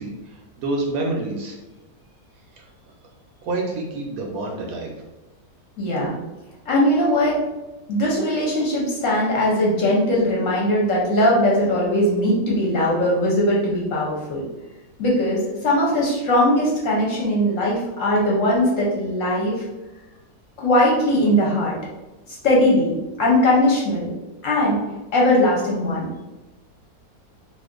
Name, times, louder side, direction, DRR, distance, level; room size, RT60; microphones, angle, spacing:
voice 1, 0.0-1.6 2.5-2.7 3.4-4.9, right 2 dB, 70° right, 0 dB, 0.9 m, -28 dB
voice 2, 5.8-6.2 6.7-7.4 7.9-14.5 15.0-19.6 20.6-21.7 22.3-22.9 23.2-24.1 24.4-24.8 25.1-26.1, left 1 dB, 60° left, -4 dB, 0.9 m, -20 dB
2.5 x 2.4 x 3.6 m, 1.1 s
omnidirectional pair, 1.7 m